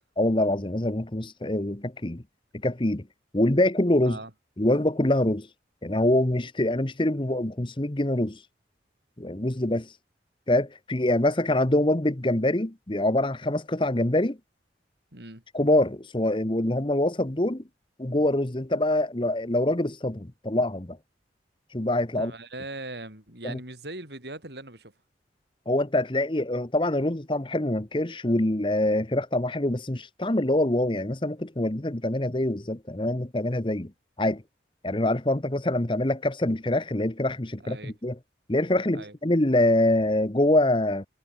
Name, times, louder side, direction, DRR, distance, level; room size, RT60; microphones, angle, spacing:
voice 1, 0.2-2.2 2.6-3.1 3.3-4.2 4.6-5.5 5.8-8.4 9.2-9.9 10.5-14.4 15.5-17.6 18.0-21.0 21.7-22.3 23.4-23.6 25.7-33.9 34.2-34.4 34.8-38.2 38.5-41.1, left 1 dB, 25° left, 1.2 m, -25 dB
voice 2, 15.1-15.4 22.2-24.9 37.6-38.0 38.9-39.1, right 2 dB, 65° right, 5.4 m, -40 dB
head